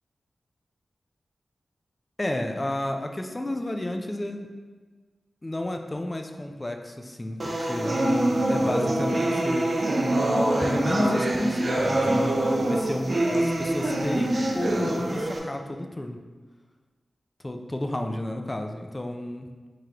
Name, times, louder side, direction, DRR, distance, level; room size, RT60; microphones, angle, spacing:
voice 1, 2.2-4.5 5.4-8.0 8.5-9.7 10.6-12.2 12.7-16.2 17.4-19.5, left 1 dB, 20° left, 4 dB, 0.3 m, -31 dB
sound 1, 7.4-15.4, right 1 dB, 45° right, 0.4 m, -25 dB
3.6 x 3.2 x 2.8 m, 1.4 s
wide cardioid pair, 90°, 0 cm